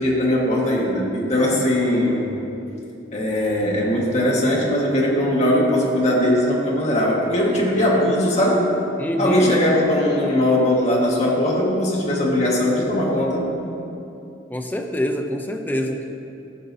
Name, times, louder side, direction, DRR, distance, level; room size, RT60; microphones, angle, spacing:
voice 1, 0.0-2.2 3.1-8.6 9.2-13.5, left 1 dB, 35° left, -3 dB, 1.4 m, -20 dB
voice 2, 9.0-9.5 14.5-16.1, equal, 10° left, 2 dB, 0.6 m, -25 dB
15.0 x 6.6 x 2.7 m, 2.8 s
head